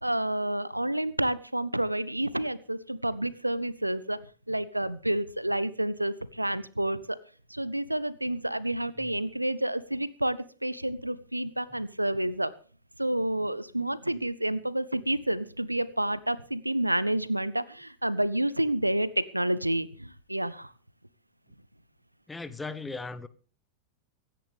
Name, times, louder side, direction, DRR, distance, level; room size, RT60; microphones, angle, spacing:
voice 1, 0.0-7.2 7.5-12.5 13.0-20.7, right 1 dB, 85° right, 0.7 m, -29 dB
voice 2, 22.3-23.3, left 3 dB, 10° left, 1.0 m, -37 dB
24.0 x 10.5 x 3.4 m
figure-of-eight pair, 90°, 0 cm